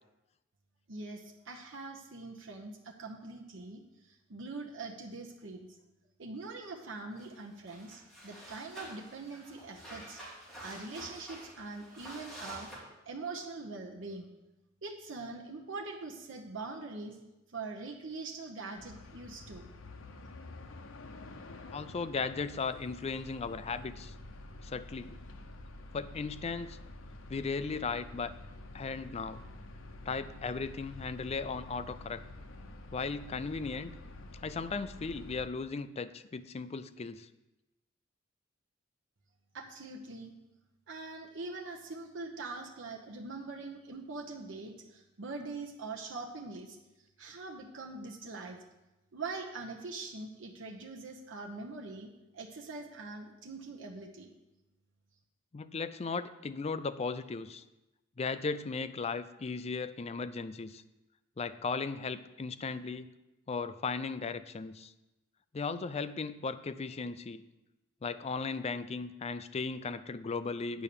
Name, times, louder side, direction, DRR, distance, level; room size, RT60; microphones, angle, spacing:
voice 1, 0.9-5.7 6.2-10.2 10.6-12.7 13.1-14.3 14.8-17.2 17.5-19.7 39.5-40.3 40.9-46.8 47.2-48.6 49.1-54.4, right 3 dB, 70° right, 0 dB, 0.9 m, -43 dB
sound 1, 7.2-7.3 7.7-12.8, right 1 dB, ahead, 3.2 m, -49 dB
sound 2, 18.8-35.5, left 2 dB, 80° left, 0.8 m, -48 dB
voice 2, 21.7-24.1 24.6-25.2 25.9-26.8 27.3-28.3 28.7-29.4 30.1-32.2 32.9-33.9 34.4-37.3 55.5-57.6 58.2-60.8 61.4-63.1 63.5-64.9 65.5-67.4 68.0-70.8, left 4 dB, 30° left, 12 dB, 0.4 m, -36 dB
9.0 x 5.6 x 6.7 m, 0.99 s
head